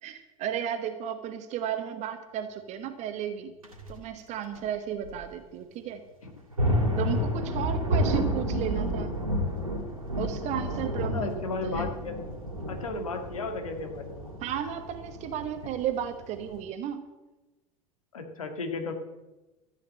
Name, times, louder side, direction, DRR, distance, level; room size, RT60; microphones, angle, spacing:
voice 1, 0.0-3.5 3.9-6.0 7.0-9.1 10.2-11.9 14.4-17.0, right 9 dB, 40° right, 8 dB, 1.3 m, -34 dB
sound 1, 3.6-3.9 4.5-4.6 5.0-5.1 6.3-16.6, equal, 80° right, 2.4 m, -30 dB
voice 2, 11.1-12.1 12.7-14.3 18.1-18.9, left 3 dB, 75° left, 5 dB, 1.9 m, -34 dB
14.0 x 8.6 x 7.3 m, 1.1 s
figure-of-eight pair, 75°, 18 cm